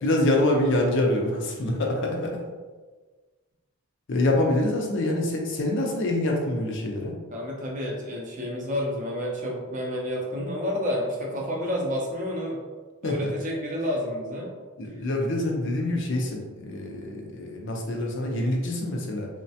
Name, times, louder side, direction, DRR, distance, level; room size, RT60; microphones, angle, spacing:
voice 1, 0.0-2.4 4.1-7.1 13.0-13.3 14.8-19.3, left 1 dB, 55° left, 0 dB, 0.4 m, -25 dB
voice 2, 7.3-12.6 13.0-14.5, equal, 35° right, -1 dB, 0.5 m, -30 dB
3.1 x 2.1 x 2.7 m, 1.4 s
head